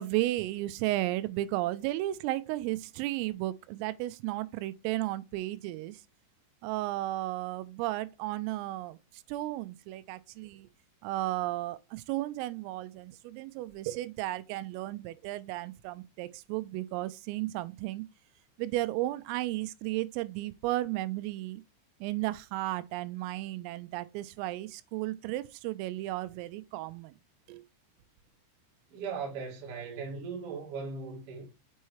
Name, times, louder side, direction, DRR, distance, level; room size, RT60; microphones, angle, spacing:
voice 1, 0.0-6.0 6.6-10.7 11.0-18.1 18.6-21.6 22.0-27.1 27.5-27.6, right 16 dB, 85° right, 3.2 m, -34 dB
voice 2, 28.9-31.5, right 5 dB, 50° right, 1.7 m, -38 dB
6.9 x 5.5 x 3.1 m
omnidirectional pair, 5.9 m